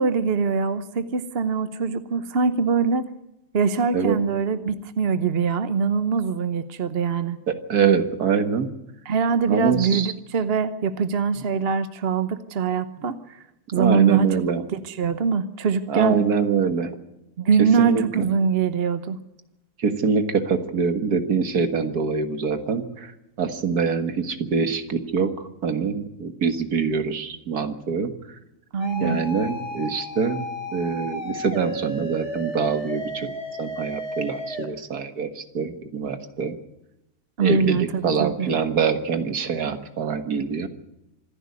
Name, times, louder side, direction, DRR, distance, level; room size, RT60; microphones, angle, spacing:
voice 1, 0.0-3.1 3.5-7.4 9.0-13.4 13.7-14.3 14.7-16.2 17.4-19.2 28.7-29.2 37.4-38.5, right 5 dB, 45° right, 11 dB, 1.1 m, -23 dB
voice 2, 7.5-8.7 9.5-10.1 13.0-13.1 13.7-14.6 15.9-16.9 17.8-18.3 19.8-28.4 29.0-30.4 30.7-33.3 33.6-36.6 37.4-40.7, right 6 dB, 85° right, 8 dB, 2.1 m, -24 dB
sound 1, 28.8-34.7, equal, 50° left, 3.5 m, -33 dB
26.0 x 11.0 x 9.6 m, 0.89 s
omnidirectional pair, 1.6 m